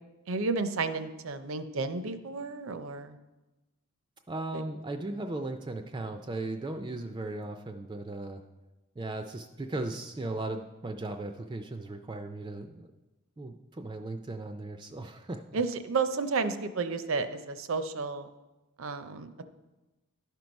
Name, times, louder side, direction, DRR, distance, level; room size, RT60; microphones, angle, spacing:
voice 1, 0.3-3.2 4.5-4.6 15.5-18.3 18.8-19.4, right 4 dB, 75° right, 11 dB, 0.6 m, -32 dB
voice 2, 4.3-8.4 9.0-12.9 13.4-15.6, right 2 dB, 20° right, 6 dB, 0.3 m, -37 dB
11.5 x 4.6 x 5.2 m, 1.1 s
head